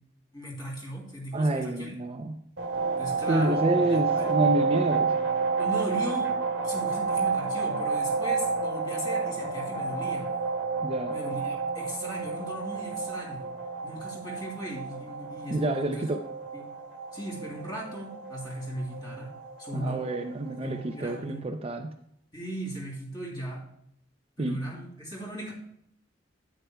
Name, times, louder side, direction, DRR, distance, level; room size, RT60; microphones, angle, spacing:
voice 1, 0.3-2.0 3.0-3.7 4.1-4.3 5.5-6.4 6.6-10.3 11.1-13.5 13.8-16.0 16.5-16.7 17.1-20.0 20.6-21.5 22.3-23.6 24.4-25.5, right 1 dB, 25° left, -2 dB, 3.1 m, -38 dB
voice 2, 1.3-2.4 3.3-5.2 10.8-11.2 15.5-16.2 19.7-21.9 24.4-24.6, right 2 dB, 35° right, 5 dB, 0.5 m, -28 dB
sound 1, 2.6-21.2, right 4 dB, 75° right, 1.3 m, -30 dB
11.5 x 9.4 x 2.3 m, 0.71 s
head